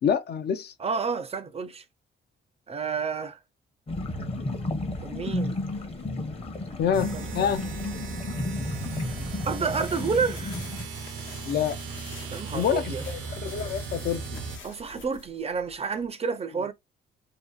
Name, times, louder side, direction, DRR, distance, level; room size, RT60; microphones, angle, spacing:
voice 1, 0.0-0.7 6.8-7.6 11.5-11.8 12.5-14.4, left 8 dB, 55° left, 0.5 m, -27 dB
voice 2, 0.8-1.8 2.7-3.4 5.0-5.6 7.1-7.5 9.4-10.6 12.3-13.0 14.6-16.7, right 5 dB, 30° right, 0.5 m, -30 dB
sound 1, 3.9-10.9, left 2 dB, 30° left, 0.8 m, -33 dB
sound 2, 6.9-14.6, right 4 dB, 85° right, 0.6 m, -37 dB
sound 3, 9.7-16.1, left 5 dB, 75° left, 1.0 m, -47 dB
2.7 x 2.4 x 2.3 m
cardioid pair, 90°, 20 cm